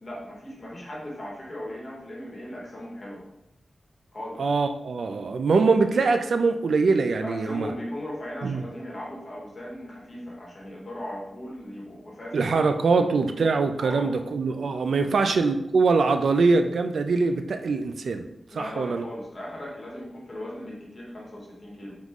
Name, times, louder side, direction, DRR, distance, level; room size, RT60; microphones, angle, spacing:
voice 1, 0.0-3.2 4.1-4.4 7.2-12.6 12.9-13.1 13.8-14.1 15.0-15.3 18.5-22.0, left 1 dB, 30° left, -4 dB, 1.2 m, -38 dB
voice 2, 4.4-7.7 8.4-8.6 12.3-18.3 18.5-19.0, right 4 dB, 75° right, 7 dB, 0.3 m, -23 dB
3.6 x 3.0 x 3.7 m, 0.83 s
wide cardioid pair, 160°, 0 cm